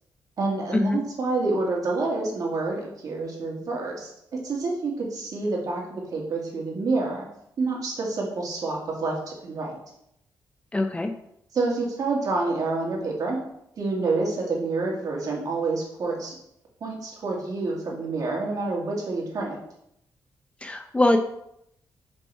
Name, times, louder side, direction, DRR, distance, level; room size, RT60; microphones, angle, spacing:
voice 1, 0.4-4.1 4.4-7.3 7.6-9.8 11.5-13.4 13.8-16.3 16.8-19.6, right 3 dB, 60° right, -1 dB, 2.2 m, -28 dB
voice 2, 10.7-11.1 20.6-21.2, left 1 dB, 15° left, 5 dB, 0.6 m, -22 dB
6.2 x 5.3 x 4.7 m, 0.76 s
cardioid pair, 110°, 7 cm